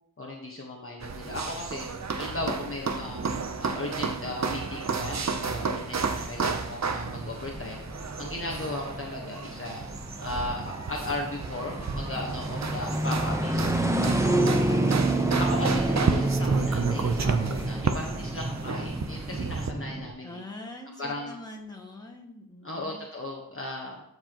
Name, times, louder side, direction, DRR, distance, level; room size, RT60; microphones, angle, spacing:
voice 1, 0.2-1.9 2.2-3.2 3.6-7.8 8.2-9.8 10.2-14.9 15.4-20.4 21.0-21.3 22.6-24.0, left 2 dB, 35° left, -1 dB, 1.4 m, -36 dB
sound 1, 1.0-19.7, right 5 dB, 45° right, 0.8 m, -32 dB
sound 2, 1.1-20.1, right 1 dB, 10° right, 0.9 m, -30 dB
voice 2, 20.2-23.1, left 2 dB, 10° left, -1 dB, 1.9 m, -43 dB
13.0 x 4.7 x 3.0 m, 0.77 s
cardioid pair, 55°, 38 cm